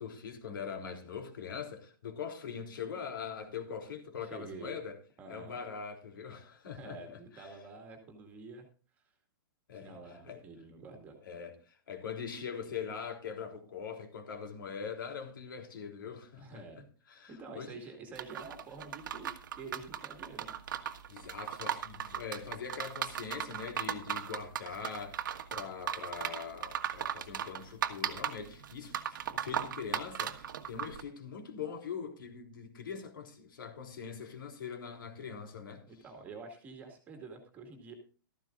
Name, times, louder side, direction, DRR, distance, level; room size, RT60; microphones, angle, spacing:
voice 1, 0.0-5.0 5.3-7.6 9.7-10.0 10.2-10.4 11.3-17.8 21.1-35.9, left 6 dB, 65° left, 3.5 m, -42 dB
voice 2, 4.2-4.7 5.2-5.5 6.7-8.7 9.7-11.2 16.4-16.9 17.3-20.6 35.9-38.0, right 4 dB, 15° right, 2.1 m, -48 dB
sound 1, 18.2-31.0, right 9 dB, 60° right, 1.5 m, -37 dB
15.5 x 14.0 x 2.5 m
hypercardioid pair, 175°, 12 cm